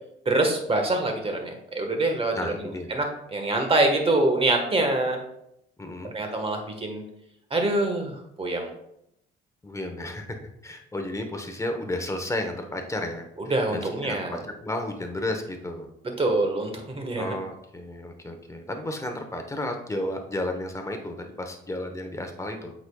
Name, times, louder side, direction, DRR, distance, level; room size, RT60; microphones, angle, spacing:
voice 1, 0.2-3.1 3.3-5.2 6.1-7.0 7.5-8.7 13.5-14.4 16.2-17.4, right 2 dB, 30° right, 4 dB, 1.4 m, -25 dB
voice 2, 2.3-2.9 5.8-6.1 9.6-10.4 10.6-13.3 13.7-15.9 17.2-22.7, left 1 dB, 15° left, 4 dB, 1.0 m, -32 dB
7.9 x 5.2 x 2.3 m, 0.78 s
cardioid pair, 90°, 20 cm